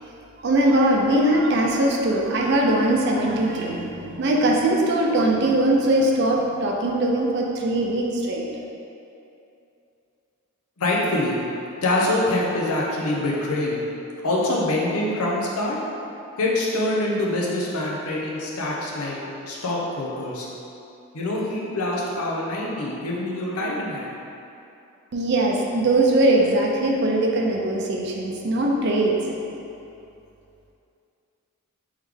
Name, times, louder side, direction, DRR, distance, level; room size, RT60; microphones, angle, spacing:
voice 1, 0.4-8.4 25.1-29.2, right 1 dB, 50° right, 0 dB, 0.4 m, -21 dB
voice 2, 10.8-11.4 11.8-13.8 14.2-15.8 16.4-19.2 19.5-20.5 21.1-24.1, left 1 dB, 85° left, -3 dB, 0.7 m, -25 dB
3.6 x 3.1 x 3.4 m, 2.7 s
head